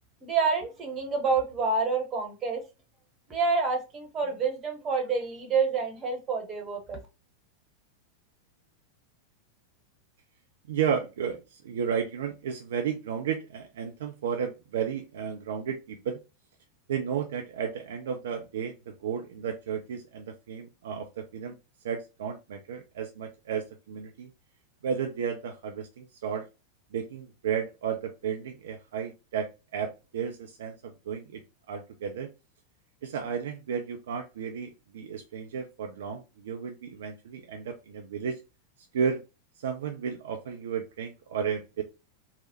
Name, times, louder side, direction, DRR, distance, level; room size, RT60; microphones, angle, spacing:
voice 1, 0.2-2.6 3.3-7.0, right 4 dB, 25° right, 3 dB, 1.0 m, -28 dB
voice 2, 10.7-16.2 16.9-21.5 21.8-24.3 24.8-26.5 26.9-31.4 31.7-32.3 33.0-38.4 38.9-39.2 39.6-41.8, right 7 dB, 60° right, 3 dB, 0.4 m, -33 dB
3.2 x 2.1 x 2.7 m, 0.27 s
figure-of-eight pair, 90°, 0 cm